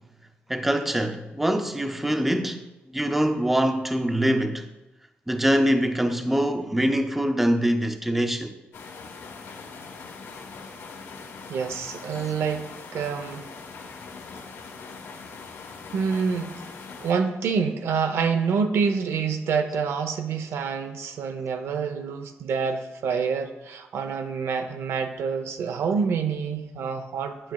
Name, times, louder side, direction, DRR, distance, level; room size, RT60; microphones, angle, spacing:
voice 1, 0.5-2.7 2.9-4.6 5.3-8.5, equal, 5° right, 0.4 m, -24 dB
sound 1, 8.7-17.1, left 4 dB, 80° left, 1.0 m, -41 dB
voice 2, 11.5-13.5 15.9-16.5 17.0-27.5, right 5 dB, 90° right, 0.6 m, -27 dB
8.9 x 8.9 x 2.3 m
wide cardioid pair, 155°, 4 cm